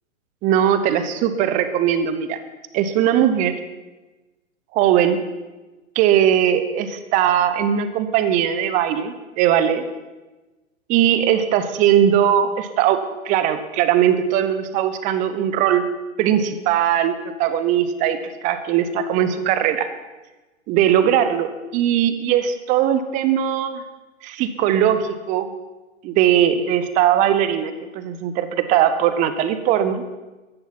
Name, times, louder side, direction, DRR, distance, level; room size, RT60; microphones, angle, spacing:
voice 1, 0.4-2.4 2.7-3.6 4.7-5.2 5.9-9.9 10.9-15.9 16.2-19.9 20.7-23.8 24.2-25.5 26.0-30.0, right 10 dB, 20° right, 12 dB, 0.9 m, -19 dB
14.5 x 11.5 x 5.7 m, 1.2 s
figure-of-eight pair, 115°, 40 cm